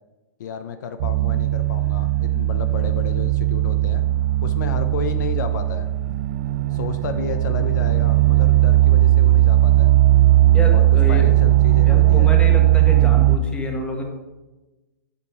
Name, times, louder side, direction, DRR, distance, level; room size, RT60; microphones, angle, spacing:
voice 1, 0.4-4.0 4.4-5.9 6.7-9.9 10.7-12.3, left 7 dB, 70° left, 8 dB, 0.6 m, -32 dB
sound 1, 1.0-13.4, right 14 dB, 55° right, 0.5 m, -17 dB
voice 2, 10.5-11.3 11.8-14.0, equal, 10° left, 1 dB, 1.3 m, -28 dB
6.9 x 5.3 x 4.6 m, 1.1 s
hypercardioid pair, 130°, 10 cm